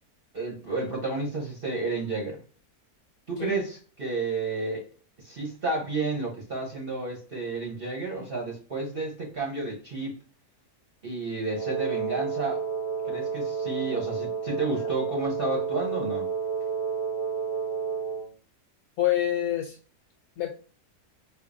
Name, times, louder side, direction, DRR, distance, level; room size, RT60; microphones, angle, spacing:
voice 1, 0.3-2.4 3.3-4.8 5.2-10.1 11.0-12.6 13.1-16.3, right 3 dB, 40° right, 1.0 m, -31 dB
Wind instrument woodwind instrument, 11.5-18.3, right 6 dB, 20° left, 0.4 m, -30 dB
voice 2, 19.0-19.8 20.4-20.5, left 13 dB, 70° left, 0.9 m, -28 dB
4.4 x 2.5 x 2.5 m
omnidirectional pair, 1.7 m